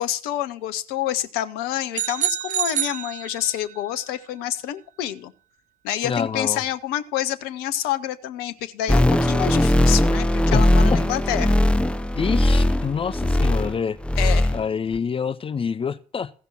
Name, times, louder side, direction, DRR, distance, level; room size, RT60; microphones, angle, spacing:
voice 1, 0.0-5.3 5.8-11.6 14.2-14.5, left 12 dB, 65° left, 0.7 m, -28 dB
sound 1, 1.9-3.8, right 11 dB, 45° right, 0.6 m, -27 dB
voice 2, 6.0-6.6 10.5-11.0 12.2-14.0 14.5-16.3, left 6 dB, 30° left, 0.6 m, -27 dB
sound 2, 8.9-13.8 14.0-14.6 15.0-15.1, left 1 dB, 5° left, 0.9 m, -19 dB
15.5 x 5.3 x 6.1 m
figure-of-eight pair, 50°, 17 cm